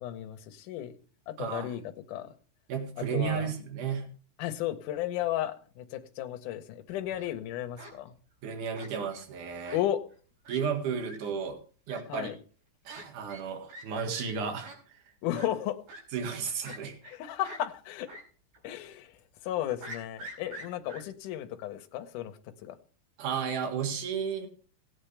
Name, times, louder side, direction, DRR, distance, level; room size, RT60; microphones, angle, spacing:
voice 1, 0.0-1.0 1.3-1.8 2.1-2.3 3.0-3.5 4.4-8.2 9.7-10.0 12.1-12.4 15.2-15.8 17.1-18.1 18.6-19.2 19.4-22.8, left 12 dB, 70° left, 6 dB, 2.2 m, -34 dB
voice 2, 1.4-1.7 2.7-4.1 8.4-9.8 10.5-11.6 11.9-12.3 12.8-15.0 16.1-17.0 23.2-24.5, right 6 dB, 60° right, 4 dB, 3.1 m, -33 dB
Fowl, 6.9-7.3 7.8-7.9 8.7-9.2 9.6-9.8 10.1-10.2 10.4-10.6 11.0-11.2 11.9-12.0 12.9-13.0 13.3-13.4 13.7-13.8 14.1-14.2 14.6-14.8 15.3-15.5 15.9-16.0 16.6-17.2 17.4-17.6 18.1-18.2 18.5-18.6 19.8-21.0, right 1 dB, 80° right, 6.2 m, -45 dB
18.0 x 8.9 x 3.3 m, 0.41 s
omnidirectional pair, 4.3 m